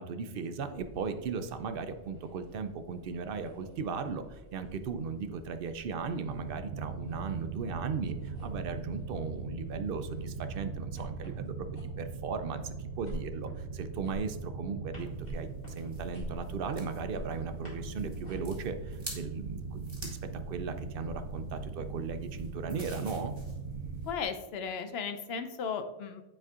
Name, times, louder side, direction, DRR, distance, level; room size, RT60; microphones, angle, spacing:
voice 1, 0.0-23.3, right 5 dB, 65° right, 9 dB, 0.7 m, -37 dB
sound 1, 0.7-18.4, equal, 40° left, 2.3 m, -50 dB
sound 2, 6.3-24.1, right 5 dB, 90° right, 0.9 m, -40 dB
sound 3, 15.0-24.2, right 1 dB, 25° right, 1.5 m, -47 dB
voice 2, 24.0-26.2, left 6 dB, 80° left, 9 dB, 0.9 m, -35 dB
9.2 x 4.3 x 2.4 m, 1.0 s
omnidirectional pair, 1.1 m